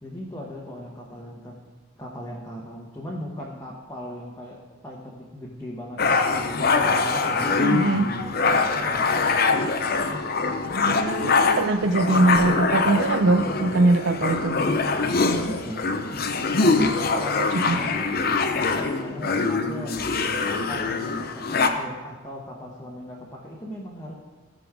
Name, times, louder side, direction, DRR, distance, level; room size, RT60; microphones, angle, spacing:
voice 1, 0.0-1.5 2.0-7.6 7.9-9.3 15.2-15.8 16.6-18.1 18.9-20.0 20.4-24.2, equal, 15° left, -4 dB, 1.0 m, -38 dB
sound 1, 6.0-21.7, left 4 dB, 45° left, 0.6 m, -23 dB
voice 2, 7.6-8.1 10.9-14.6 17.4-17.8, right 2 dB, 60° right, 12 dB, 0.5 m, -22 dB
15.0 x 5.1 x 4.8 m, 1.3 s
head